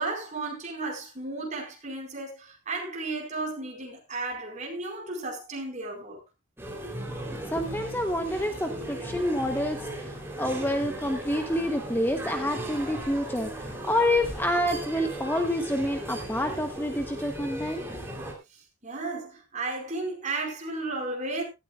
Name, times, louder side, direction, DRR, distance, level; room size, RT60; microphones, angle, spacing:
voice 1, 0.0-6.2 12.9-13.1 18.1-18.2 18.5-21.4, right 3 dB, 35° right, 4.6 m, -34 dB
sound 1, 6.6-18.3, right 1 dB, 10° right, 3.3 m, -37 dB
voice 2, 7.4-17.8, left 1 dB, 10° left, 0.9 m, -28 dB
17.0 x 13.0 x 2.4 m
head